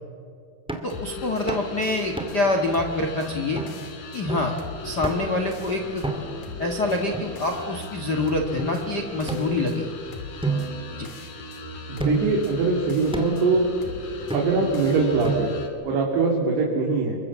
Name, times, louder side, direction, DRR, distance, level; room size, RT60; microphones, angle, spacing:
sound 1, 0.7-1.0 1.5-1.7 2.2-2.5 3.0-3.1 3.6-3.8 4.3-4.6 5.0-5.4 6.0-6.5 7.1-7.9 8.6-8.7 9.3-10.0 10.4-11.5 12.0-12.4 13.1-13.5 14.3-14.8 15.2-15.8, right 3 dB, ahead, 1.4 m, -31 dB
voice 1, 0.8-3.6 4.1-4.5 4.8-6.0 6.6-9.9 11.0-11.1, left 2 dB, 85° left, 4 dB, 0.9 m, -26 dB
sound 2, 0.9-15.7, left 3 dB, 55° left, 4.1 m, -37 dB
voice 2, 11.9-13.7 14.3-17.2, right 3 dB, 70° right, -2 dB, 4.9 m, -22 dB
29.0 x 24.0 x 7.4 m, 2.4 s
omnidirectional pair, 4.9 m